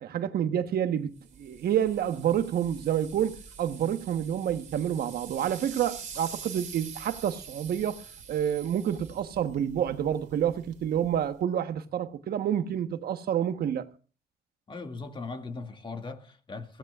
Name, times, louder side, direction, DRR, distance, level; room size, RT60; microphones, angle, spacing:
voice 1, 0.0-1.1 1.4-13.9, right 9 dB, 65° right, 1.2 m, -28 dB
sound 1, 1.1-11.4, right 6 dB, 45° right, 2.5 m, -46 dB
voice 2, 14.7-16.8, left 3 dB, 30° left, 2.2 m, -39 dB
22.5 x 16.5 x 2.4 m
cardioid pair, 115°, 17 cm